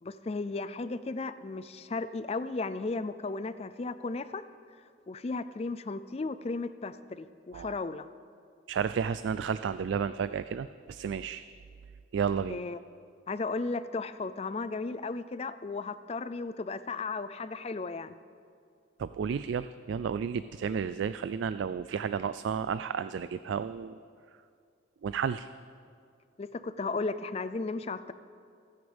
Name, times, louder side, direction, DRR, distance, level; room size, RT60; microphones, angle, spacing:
voice 1, 0.0-4.4 5.1-8.1 12.5-12.8 13.3-18.1 26.4-28.1, left 3 dB, 30° left, 13 dB, 0.4 m, -35 dB
voice 2, 8.7-11.4 12.1-12.6 19.0-24.0 25.0-25.5, right 6 dB, 70° right, 13 dB, 0.3 m, -32 dB
27.0 x 9.6 x 3.5 m, 2.3 s
head